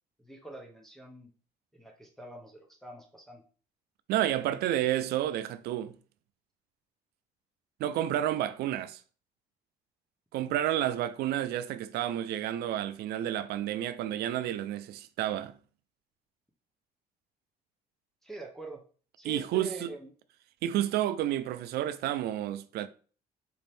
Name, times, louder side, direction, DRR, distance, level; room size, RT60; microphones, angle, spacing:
voice 1, 0.2-1.3 1.7-3.4 18.2-18.8 19.2-20.1, right 2 dB, ahead, 0.6 m, -44 dB
voice 2, 4.1-6.0 7.8-9.0 10.3-15.5 19.2-19.9 20.6-22.9, right 12 dB, 70° right, 0.4 m, -30 dB
4.3 x 2.6 x 3.3 m
cardioid pair, 110°, 17 cm